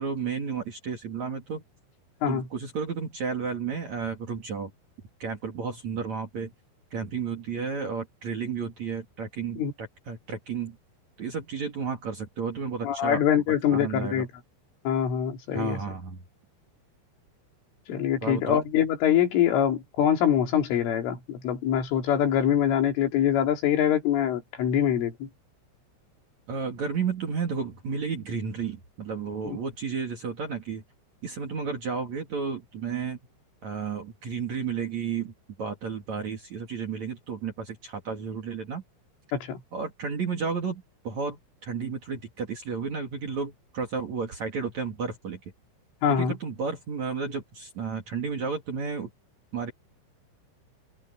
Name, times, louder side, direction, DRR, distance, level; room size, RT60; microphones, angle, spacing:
voice 1, 0.0-1.6 2.3-4.7 5.2-6.5 6.9-10.8 11.2-13.2 13.7-14.2 15.5-16.2 18.2-18.6 26.5-30.8 31.2-33.2 33.6-35.3 35.6-38.8 39.7-45.4 46.1-49.1 49.5-49.7, right 5 dB, 45° right, 2.7 m, -32 dB
voice 2, 12.8-14.3 14.9-15.8 17.9-25.3 29.5-29.6 39.3-39.6 46.0-46.4, left 9 dB, 75° left, 5.7 m, -24 dB
open air
omnidirectional pair, 5.7 m